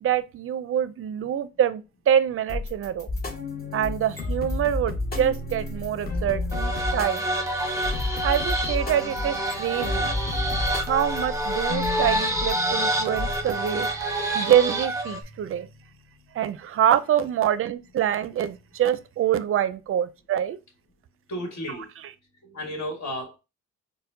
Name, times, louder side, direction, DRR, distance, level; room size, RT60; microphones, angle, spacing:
voice 1, 0.0-3.1 3.7-7.2 8.2-10.1 10.7-13.9 14.3-15.7 16.3-20.6 21.7-22.1, right 10 dB, 45° right, 0.4 m, -25 dB
sound 1, 2.5-4.6 5.2-6.8 7.2-7.3 7.8-9.9 10.5-12.8 13.2-14.2, left 2 dB, 10° left, 1.6 m, -37 dB
sound 2, 3.1-15.7, left 2 dB, 30° left, 0.8 m, -33 dB
sound 3, 6.5-15.2, right 1 dB, 10° right, 0.7 m, -27 dB
voice 2, 21.3-21.9 22.4-23.4, equal, 65° left, 1.4 m, -33 dB
4.2 x 2.1 x 2.6 m
cardioid pair, 90°, 30 cm